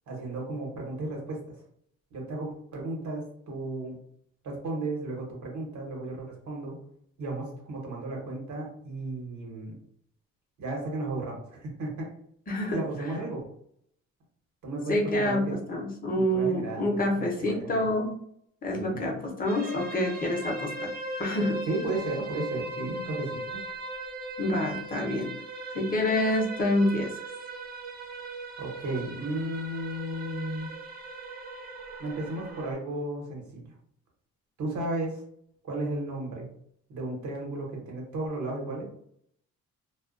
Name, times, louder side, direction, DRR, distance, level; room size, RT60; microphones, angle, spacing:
voice 1, 0.1-1.4 2.1-4.0 4.4-6.8 7.2-9.7 10.6-12.1 12.7-13.4 14.6-15.5 16.2-17.9 18.7-19.0 21.7-23.6 28.6-30.7 32.0-33.7 34.6-35.2 35.6-36.5 36.9-38.9, right 2 dB, 70° right, -1 dB, 1.0 m, -34 dB
voice 2, 12.5-12.8 14.9-18.2 18.6-20.9 21.2-21.6 24.4-25.3 25.7-27.1, left 1 dB, 30° left, 0 dB, 0.7 m, -27 dB
sound 1, 19.5-32.7, right 2 dB, 30° right, 0.5 m, -38 dB
2.3 x 2.1 x 2.4 m, 0.67 s
cardioid pair, 90°, 30 cm